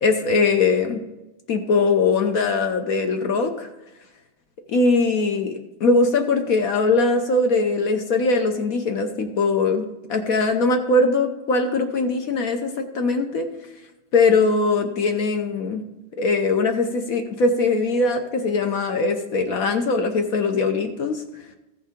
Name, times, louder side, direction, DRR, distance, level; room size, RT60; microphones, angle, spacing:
voice 1, 0.0-1.0 1.5-3.7 4.7-13.5 14.1-15.8 16.2-21.2, left 3 dB, 65° left, 6 dB, 0.8 m, -21 dB
15.5 x 5.6 x 3.6 m, 1.0 s
omnidirectional pair, 2.4 m